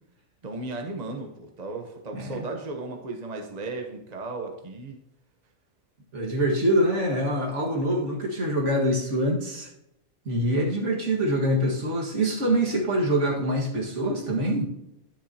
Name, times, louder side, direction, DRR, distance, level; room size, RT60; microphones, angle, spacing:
voice 1, 0.4-5.0, right 3 dB, 35° right, 3 dB, 0.9 m, -35 dB
voice 2, 2.1-2.5 6.1-9.7 10.3-14.6, right 1 dB, 60° right, -1 dB, 2.0 m, -25 dB
10.0 x 10.0 x 2.8 m, 0.83 s
omnidirectional pair, 1.4 m